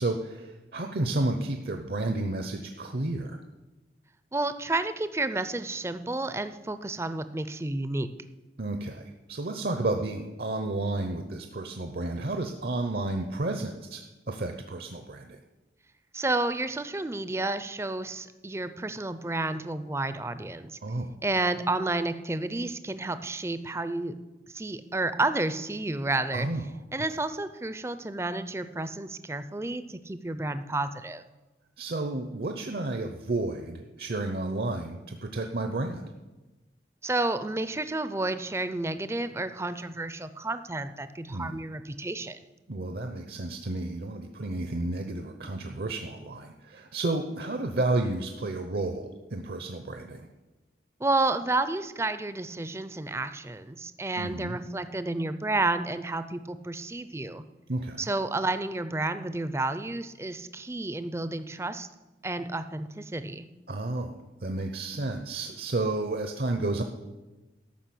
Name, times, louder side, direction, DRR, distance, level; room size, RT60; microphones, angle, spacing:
voice 1, 0.0-3.4 8.6-15.4 20.8-21.2 26.3-26.6 31.8-36.1 41.3-41.6 42.7-50.3 54.2-54.6 57.7-58.1 63.7-66.8, right 2 dB, 60° right, 6 dB, 0.7 m, -31 dB
voice 2, 4.3-8.1 16.1-20.8 21.2-24.1 24.5-26.5 26.9-31.2 37.0-42.4 51.0-57.4 58.0-61.9 62.2-63.4, right 2 dB, 15° right, 12 dB, 0.5 m, -31 dB
12.5 x 6.1 x 7.7 m, 1.1 s
head